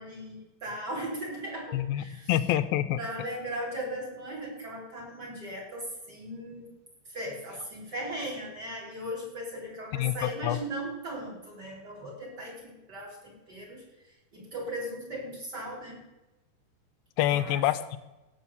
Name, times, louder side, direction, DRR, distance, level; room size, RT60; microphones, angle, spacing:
voice 1, 0.0-2.3 3.0-6.7 7.1-13.8 14.3-16.1 17.2-17.6, right 1 dB, 25° right, -2 dB, 3.6 m, -38 dB
voice 2, 1.7-3.0 9.9-10.6 17.2-18.0, left 13 dB, 80° left, 13 dB, 2.3 m, -27 dB
17.0 x 6.4 x 7.0 m, 1.0 s
omnidirectional pair, 4.4 m